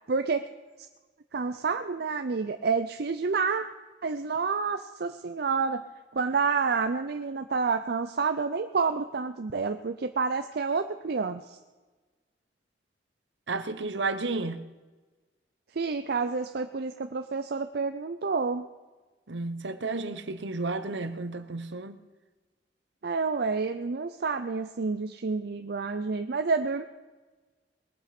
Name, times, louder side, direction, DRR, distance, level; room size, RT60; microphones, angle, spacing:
voice 1, 0.1-0.5 1.3-3.7 4.0-5.8 6.1-11.6 15.7-18.7 23.0-26.8, right 4 dB, 60° right, 0.6 m, -29 dB
voice 2, 13.5-14.6 19.3-22.0, right 3 dB, 75° right, 1.0 m, -32 dB
20.0 x 8.4 x 5.9 m
head